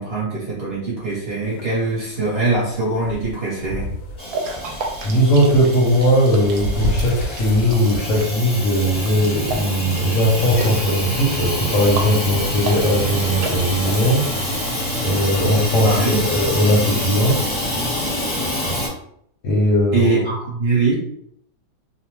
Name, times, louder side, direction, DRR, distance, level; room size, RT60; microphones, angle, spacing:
voice 1, 0.0-3.9 15.8-16.3 19.9-21.1, right 3 dB, 45° right, -6 dB, 0.9 m, -22 dB
sound 1, 1.4-14.1, left 1 dB, 80° left, 1.2 m, -33 dB
Hiss / Toilet flush / Trickle dribble, 4.2-18.9, equal, 25° left, 0.7 m, -26 dB
sound 2, 4.2-14.0, right 3 dB, 70° right, 1.0 m, -33 dB
voice 2, 5.0-14.5 15.0-17.3 19.4-20.2, equal, 65° left, -4 dB, 0.9 m, -18 dB
2.8 x 2.0 x 3.0 m, 0.69 s
omnidirectional pair, 1.8 m